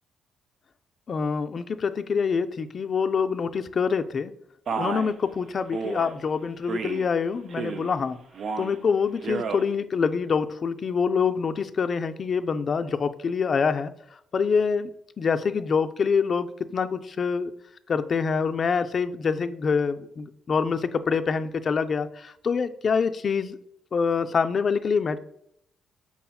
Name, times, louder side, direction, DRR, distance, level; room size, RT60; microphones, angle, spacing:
voice 1, 1.1-4.3 4.8-8.2 8.6-13.9 14.3-14.9 15.2-17.5 17.9-23.6 23.9-25.2, left 5 dB, 45° left, 9 dB, 0.3 m, -25 dB
Male speech man speaking, 4.7-5.1 5.7-6.1 6.7-7.1 7.5-7.9 8.3-8.8 9.2-9.6, right 5 dB, 60° right, 0.4 m, -31 dB
5.5 x 4.2 x 2.2 m, 0.73 s
cardioid pair, 90°, 0 cm